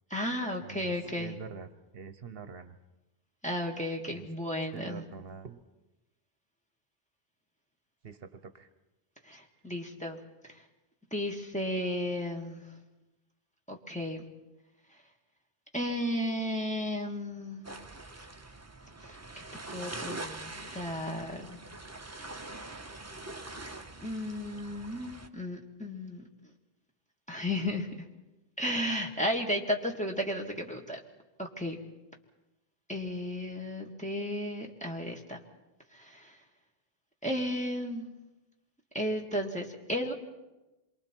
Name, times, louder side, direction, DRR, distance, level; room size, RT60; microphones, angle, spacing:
voice 1, 0.1-1.3 3.4-5.0 9.3-10.2 10.4-10.5 11.1-12.6 13.7-14.3 15.7-17.7 18.2-18.3 19.0-19.4 19.7-21.6 23.6-26.2 27.3-27.9 28.6-31.0 31.4-31.8 32.9-35.4 35.9-36.4 37.2-38.1 38.9-40.1, left 1 dB, 5° left, 0 dB, 1.9 m, -34 dB
voice 2, 0.6-1.7 1.9-2.7 4.1-4.3 4.7-5.6 8.0-8.7, right 6 dB, 70° right, 10 dB, 1.1 m, -45 dB
sound 1, 17.6-25.3, right 2 dB, 15° right, 0.9 m, -43 dB
27.5 x 23.5 x 4.5 m, 1.0 s
omnidirectional pair, 1.0 m